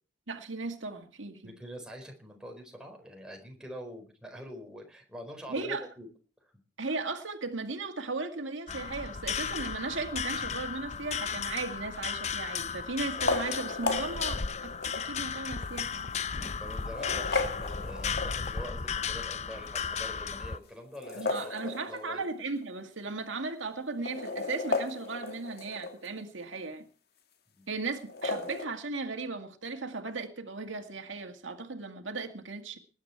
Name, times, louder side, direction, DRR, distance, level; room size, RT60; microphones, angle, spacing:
voice 1, 0.3-1.5 5.5-5.9 6.8-16.1 21.1-26.8 27.7-32.8, right 3 dB, 90° right, 2.0 m, -36 dB
voice 2, 1.4-6.1 6.4-6.5 16.6-22.2 27.5-27.7, equal, 5° right, 4.5 m, -45 dB
sound 1, 8.7-20.6, left 6 dB, 35° left, 0.6 m, -35 dB
sound 2, 11.4-11.8 13.0-15.1 15.8-15.9 16.7-18.7 20.9-22.3 22.6-22.7 22.9-23.0 23.9-26.1 28.0-28.7, left 3 dB, 55° left, 2.0 m, -34 dB
20.0 x 10.5 x 4.6 m
head